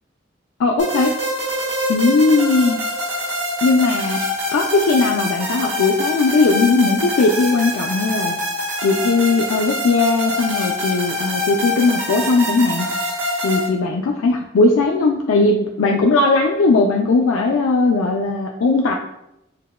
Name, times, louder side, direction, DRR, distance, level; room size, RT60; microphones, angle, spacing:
voice 1, 0.6-1.1 1.9-2.8 3.6-4.2 4.5-8.3 8.8-12.9 13.4-19.1, left 3 dB, 90° left, 1 dB, 0.4 m, -18 dB
sound 1, 0.8-13.7, left 1 dB, 60° right, 1.3 m, -24 dB
6.4 x 2.1 x 2.3 m, 0.84 s
head